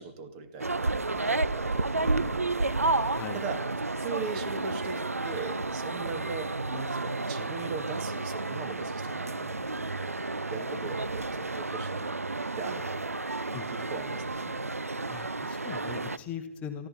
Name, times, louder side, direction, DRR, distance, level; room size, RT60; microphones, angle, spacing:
voice 1, 0.0-2.8 3.3-3.6 4.0-10.1 10.5-12.1 12.6-13.0 13.7-14.6, right 5 dB, 30° right, 8 dB, 1.9 m, -40 dB
sound 1, 0.6-16.2, right 2 dB, 90° right, 0.6 m, -31 dB
voice 2, 15.1-16.9, left 8 dB, 20° left, 7 dB, 1.0 m, -39 dB
23.0 x 14.0 x 4.3 m, 1.0 s
figure-of-eight pair, 130°, 8 cm